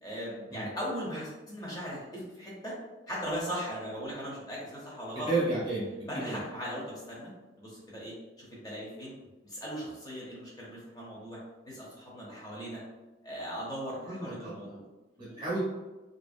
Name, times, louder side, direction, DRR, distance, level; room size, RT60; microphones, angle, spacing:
voice 1, 0.0-2.8 3.1-5.3 6.1-7.3 7.6-9.1 9.4-11.4 11.6-12.8 13.2-14.8 15.3-15.4, equal, 20° left, -5 dB, 0.6 m, -38 dB
voice 2, 5.3-6.4 14.0-14.7 15.2-15.6, right 2 dB, 25° right, -8 dB, 0.5 m, -32 dB
2.5 x 2.0 x 2.5 m, 1.1 s
head